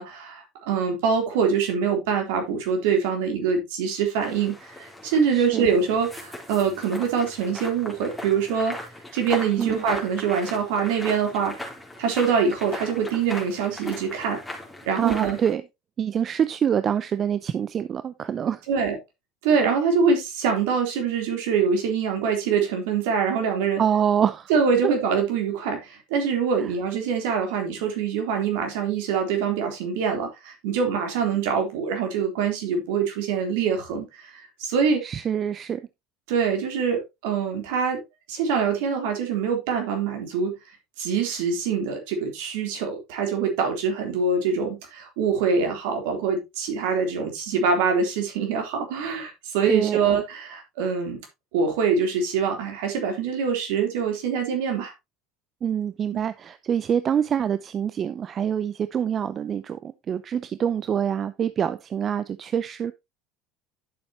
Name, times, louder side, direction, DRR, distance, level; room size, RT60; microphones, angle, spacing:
voice 1, 0.0-8.9 9.1-11.5 12.0-14.4 14.8-15.4 18.7-19.0 19.4-23.8 24.5-35.0 36.3-38.0 38.3-40.5 41.0-51.2 51.5-54.9 56.1-56.2, right 6 dB, 65° right, 3.5 m, -24 dB
sound 1, 4.2-15.5, left 1 dB, 10° left, 3.6 m, -38 dB
voice 2, 5.3-5.7 9.6-9.8 15.0-15.6 16.0-18.6 23.8-24.5 35.0-35.8 49.7-50.2 55.6-62.9, right 8 dB, 40° right, 0.6 m, -25 dB
11.0 x 7.0 x 2.9 m
hypercardioid pair, 70°, 0 cm